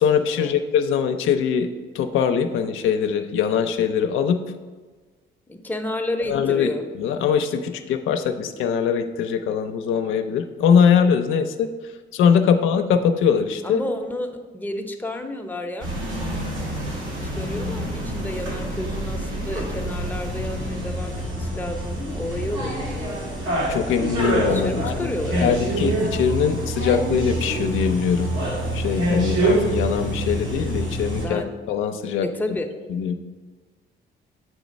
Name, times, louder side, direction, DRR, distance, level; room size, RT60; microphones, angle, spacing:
voice 1, 0.0-1.7 1.9-4.4 6.3-6.7 7.0-11.7 12.1-13.8 23.7-25.1 25.4-28.3 28.7-32.3 32.9-33.1, left 7 dB, 85° left, 7 dB, 0.5 m, -22 dB
voice 2, 5.5-6.8 13.6-15.9 17.3-23.1 24.5-25.5 31.2-31.5 32.2-32.7, left 1 dB, 10° left, 4 dB, 0.7 m, -31 dB
sound 1, 15.8-31.2, right 1 dB, 80° right, 1.8 m, -26 dB
7.3 x 3.1 x 5.1 m, 1.4 s
cardioid pair, 90°, 20 cm